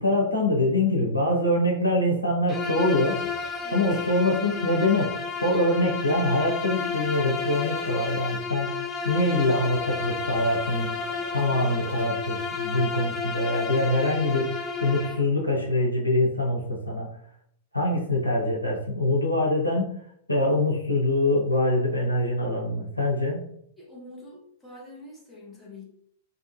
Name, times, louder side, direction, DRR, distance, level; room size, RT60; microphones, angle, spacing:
voice 1, 0.0-3.2 3.7-8.8 9.0-10.9 11.3-17.1 17.7-19.9 20.3-23.4, left 1 dB, 90° left, -2 dB, 0.7 m, -24 dB
Bowed string instrument, 2.5-15.3, left 5 dB, 20° left, 0.4 m, -32 dB
sound 1, 2.9-8.2 9.3-12.4, equal, 45° right, 1.1 m, -47 dB
voice 2, 23.8-25.9, left 2 dB, 5° left, -5 dB, 0.9 m, -45 dB
2.7 x 2.4 x 2.7 m, 0.68 s
figure-of-eight pair, 100°, 0 cm